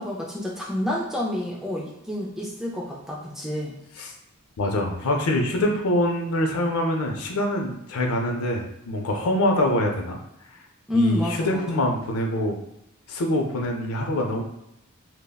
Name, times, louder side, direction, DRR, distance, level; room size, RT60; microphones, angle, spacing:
voice 1, 0.0-3.7 10.9-11.8, left 1 dB, ahead, -3 dB, 0.3 m, -28 dB
voice 2, 4.6-10.2 10.9-12.6 13.1-14.4, left 1 dB, 85° left, 2 dB, 0.5 m, -24 dB
3.5 x 2.1 x 2.2 m, 0.81 s
head